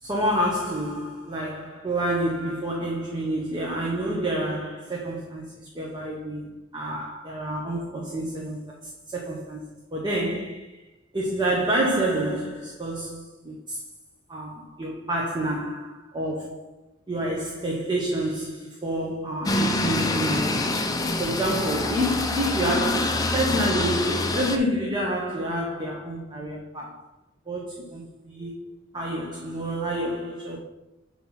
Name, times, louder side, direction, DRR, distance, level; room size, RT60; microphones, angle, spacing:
voice 1, 0.0-10.8 11.1-13.8 14.3-16.8 17.1-27.1 27.5-30.6, right 1 dB, 25° right, 1.0 m, -28 dB
sound 1, 19.4-24.6, left 2 dB, 20° left, 0.5 m, -25 dB
8.5 x 3.0 x 5.6 m
head